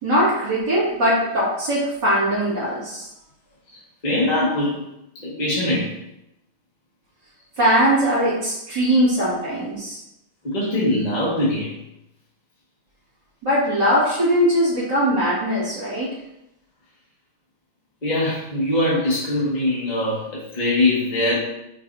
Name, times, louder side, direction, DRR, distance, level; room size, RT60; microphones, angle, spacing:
voice 1, 0.0-3.1 7.6-10.0 13.4-16.1, equal, 55° right, -10 dB, 3.2 m, -20 dB
voice 2, 3.7-4.8 5.2-5.9 10.4-11.8 18.0-21.4, left 1 dB, 20° left, -7 dB, 1.8 m, -22 dB
8.1 x 7.0 x 2.8 m, 0.85 s
omnidirectional pair, 2.3 m